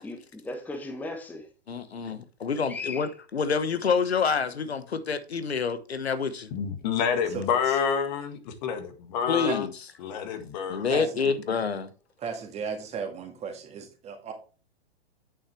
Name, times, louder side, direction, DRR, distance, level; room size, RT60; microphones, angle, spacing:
voice 1, 0.0-1.5 2.7-3.1, left 2 dB, 5° left, 1.1 m, -37 dB
voice 2, 1.7-6.5 9.3-9.7 10.7-11.9, left 5 dB, 80° left, 1.0 m, -27 dB
voice 3, 6.5-9.7 10.0-10.9, left 7 dB, 45° left, 1.7 m, -28 dB
voice 4, 10.9-11.3 12.2-14.3, right 6 dB, 20° right, 1.9 m, -35 dB
9.0 x 6.9 x 3.2 m
figure-of-eight pair, 115°, 31 cm